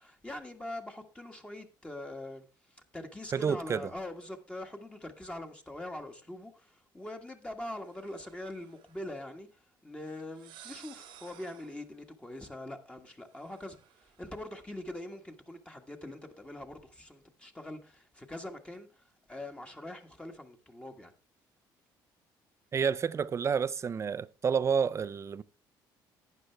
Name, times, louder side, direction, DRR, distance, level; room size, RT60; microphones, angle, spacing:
voice 1, 0.0-21.1, left 1 dB, 15° left, 1.5 m, -43 dB
voice 2, 3.3-3.9 22.7-25.4, right 6 dB, 35° right, 0.5 m, -29 dB
sound 1, 7.8-9.1 10.2-11.9 13.3-14.6, right 10 dB, 80° right, 1.4 m, -55 dB
11.5 x 9.3 x 3.4 m
cardioid pair, 100°, 8 cm